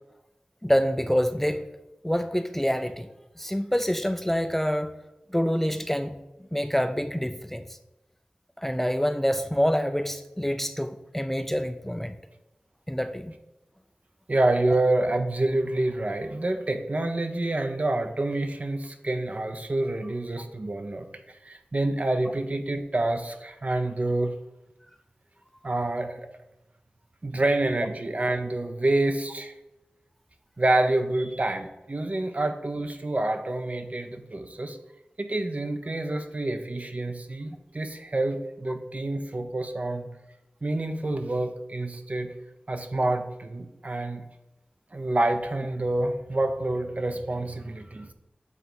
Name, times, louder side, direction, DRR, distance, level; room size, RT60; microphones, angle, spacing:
voice 1, 0.6-1.7 2.0-3.1 3.4-4.9 5.3-6.2 6.5-7.8 8.6-12.2 12.9-13.4, equal, 10° left, 0.4 m, -26 dB
voice 2, 14.3-21.1 21.5-24.3 25.6-26.2 27.2-29.5 30.6-34.8 35.2-40.1 40.6-42.3 42.7-44.2 44.9-48.1, right 2 dB, 45° right, 0.7 m, -27 dB
7.3 x 3.4 x 5.9 m
wide cardioid pair, 65°, 3 cm